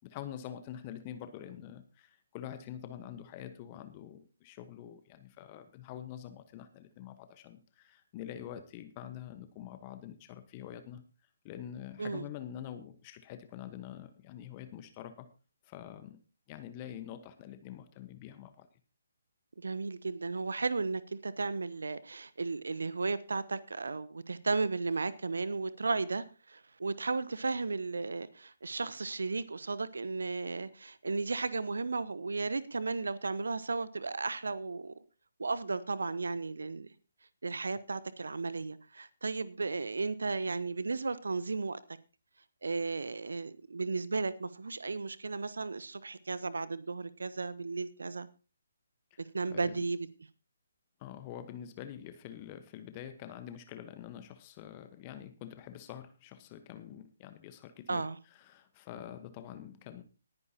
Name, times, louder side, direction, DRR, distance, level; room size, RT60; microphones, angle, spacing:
voice 1, 0.0-11.0 11.4-15.3 15.6-16.2 16.5-18.7 49.1-49.2 49.5-49.8 51.0-60.0, left 10 dB, 25° left, 1.2 m, -46 dB
voice 2, 19.6-35.0 35.4-36.9 37.4-41.8 42.6-48.3 49.2-50.1 57.9-58.2, right 3 dB, 65° right, 1.0 m, -34 dB
19.5 x 9.8 x 2.9 m
figure-of-eight pair, 140°, 0 cm